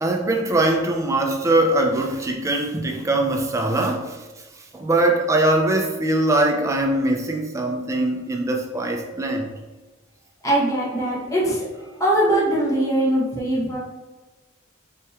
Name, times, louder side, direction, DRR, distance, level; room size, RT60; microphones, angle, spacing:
voice 1, 0.0-4.2 4.7-9.5, right 2 dB, 15° right, 2 dB, 0.4 m, -21 dB
voice 2, 10.4-11.7 12.0-13.8, right 1 dB, 15° left, -6 dB, 0.8 m, -21 dB
4.3 x 2.9 x 2.3 m, 1.2 s
head